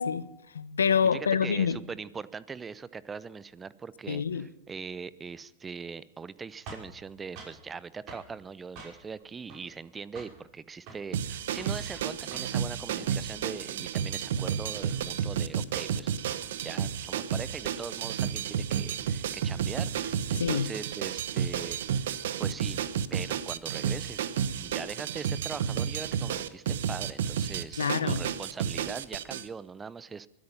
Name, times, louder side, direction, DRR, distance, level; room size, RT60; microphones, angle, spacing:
voice 1, 0.0-1.8 4.1-4.5 20.4-20.7 24.5-24.6 27.8-28.2, left 6 dB, 85° left, 0.8 m, -27 dB
voice 2, 1.1-22.1 22.4-22.8 23.1-24.3 24.6-30.3, right 5 dB, 15° right, 0.7 m, -41 dB
sound 1, 6.7-7.6 8.1-8.3 8.8-9.2 9.5-9.9 10.2-10.4 10.8-11.0 11.5-12.6 12.9-13.2, right 3 dB, 40° right, 5.5 m, -46 dB
sound 2, 11.1-29.4, right 8 dB, 70° right, 0.9 m, -31 dB
23.0 x 8.8 x 5.5 m
hypercardioid pair, 105°, 0 cm